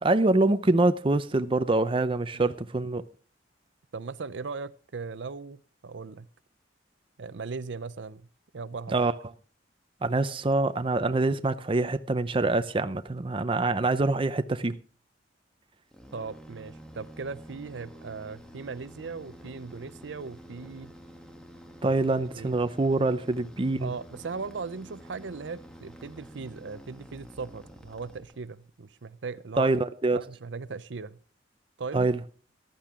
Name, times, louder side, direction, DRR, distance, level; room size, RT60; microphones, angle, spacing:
voice 1, 0.0-3.1 8.9-9.1 10.0-14.8 21.8-23.9 29.6-30.2 31.9-32.2, right 2 dB, 30° right, 0.6 m, -25 dB
voice 2, 3.9-6.3 7.2-8.3 8.5-9.1 16.1-20.9 21.8-22.0 22.3-22.6 23.8-29.7 30.1-31.2 31.8-32.1, right 4 dB, 75° right, 0.6 m, -38 dB
sound 1, 15.9-28.7, equal, 5° left, 1.3 m, -49 dB
14.5 x 11.5 x 3.7 m
head